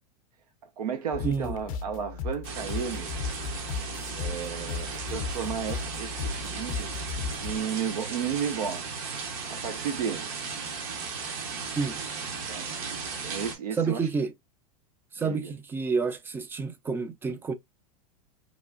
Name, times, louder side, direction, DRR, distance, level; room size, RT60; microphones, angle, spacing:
voice 1, 0.6-3.1 4.2-6.9 7.4-9.0 9.5-10.3 12.5-12.7 13.2-14.1 15.2-15.5, right 7 dB, 85° right, 0.5 m, -33 dB
sound 1, 1.1-7.7, left 5 dB, 60° left, 0.5 m, -35 dB
voice 2, 1.2-1.6 11.8-12.0 13.8-14.3 15.1-17.5, right 5 dB, 10° right, 0.3 m, -29 dB
sound 2, 2.4-13.6, right 5 dB, 55° right, 1.0 m, -36 dB
3.0 x 2.3 x 2.4 m
hypercardioid pair, 115°, 20 cm